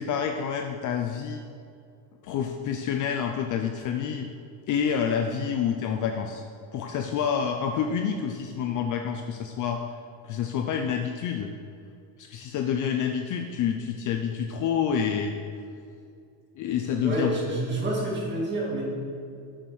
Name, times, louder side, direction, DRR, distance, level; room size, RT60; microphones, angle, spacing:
voice 1, 0.0-1.4 2.2-4.3 4.7-6.4 6.7-9.8 10.2-11.5 12.2-15.3 16.6-17.3, left 7 dB, 40° left, 4 dB, 0.5 m, -28 dB
voice 2, 17.0-18.8, right 1 dB, 25° right, -5 dB, 2.4 m, -28 dB
7.4 x 6.3 x 6.9 m, 2.4 s
cardioid pair, 170°, 47 cm